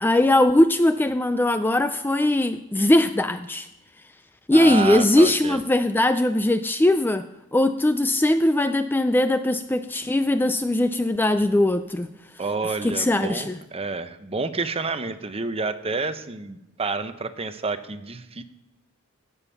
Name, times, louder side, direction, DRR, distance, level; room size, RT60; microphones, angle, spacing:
voice 1, 0.0-3.7 4.5-7.3 7.5-12.1 12.8-13.6, left 1 dB, 10° left, 10 dB, 0.3 m, -20 dB
voice 2, 4.5-5.6 12.4-18.4, right 4 dB, 25° right, 10 dB, 0.7 m, -29 dB
16.5 x 7.2 x 5.7 m, 0.92 s
head